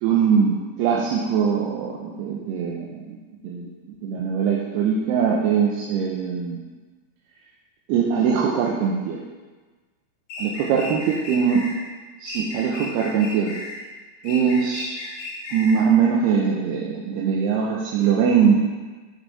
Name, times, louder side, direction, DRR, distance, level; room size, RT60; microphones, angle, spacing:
voice 1, 0.0-3.2 3.4-3.7 4.0-6.6 7.9-9.2 10.4-11.7 12.2-13.5 14.2-14.9 15.5-18.6, right 6 dB, 80° right, -3 dB, 2.8 m, -21 dB
sound 1, 10.3-11.8 12.3-13.8 14.2-15.9, left 2 dB, 85° left, 4.2 m, -35 dB
14.5 x 4.9 x 4.1 m, 1.3 s
omnidirectional pair, 4.8 m